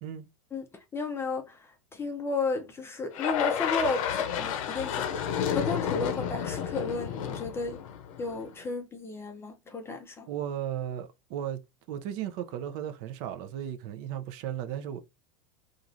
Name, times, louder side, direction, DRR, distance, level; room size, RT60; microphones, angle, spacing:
voice 1, 0.9-5.2 5.5-7.8 8.2-10.3, left 3 dB, 15° left, 0.4 m, -33 dB
sound 1, 3.1-8.5, left 8 dB, 75° left, 0.6 m, -31 dB
voice 2, 10.3-11.6 11.9-15.0, right 10 dB, 50° right, 0.4 m, -35 dB
3.0 x 2.4 x 2.5 m
supercardioid pair, 140°, 17 cm